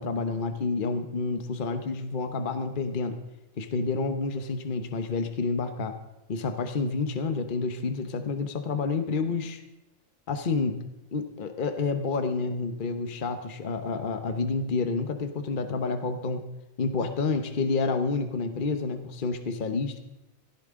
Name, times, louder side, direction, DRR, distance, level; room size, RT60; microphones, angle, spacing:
voice 1, 0.0-3.2 3.6-6.0 6.3-9.6 10.3-10.8 11.1-16.4 16.8-20.0, left 4 dB, 45° left, 8 dB, 1.1 m, -29 dB
16.5 x 14.5 x 3.7 m, 0.93 s
omnidirectional pair, 1.3 m